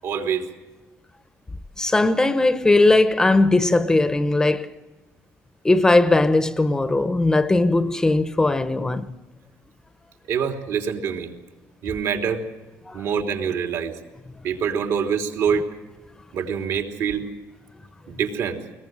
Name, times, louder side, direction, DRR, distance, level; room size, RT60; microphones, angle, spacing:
voice 1, 0.0-0.5 10.3-11.3 11.8-12.4 12.9-13.9 14.4-15.7 16.3-17.3 18.1-18.6, right 7 dB, 70° right, 3.3 m, -25 dB
voice 2, 1.8-4.7 5.6-9.1 12.9-13.0, left 2 dB, 10° left, 0.7 m, -19 dB
22.0 x 20.5 x 7.7 m
cardioid pair, 150°, 5 cm